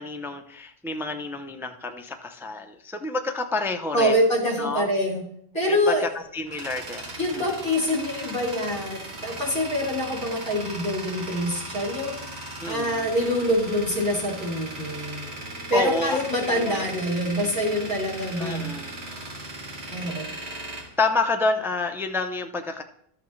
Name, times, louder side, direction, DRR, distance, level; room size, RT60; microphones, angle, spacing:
voice 1, 0.0-4.2 4.6-4.9 5.7-7.4 12.6-13.1 15.7-16.9 17.4-17.5 18.4-19.0 21.0-22.8, left 3 dB, 5° right, 5 dB, 0.4 m, -29 dB
voice 2, 3.9-5.2 5.5-6.1 7.2-12.1 12.7-15.4 15.7-18.7 19.9-20.3, equal, 25° left, -3 dB, 2.9 m, -25 dB
Tools, 6.2-21.8, right 1 dB, 90° right, 1.6 m, -37 dB
12.5 x 5.9 x 3.2 m, 0.67 s
omnidirectional pair, 1.0 m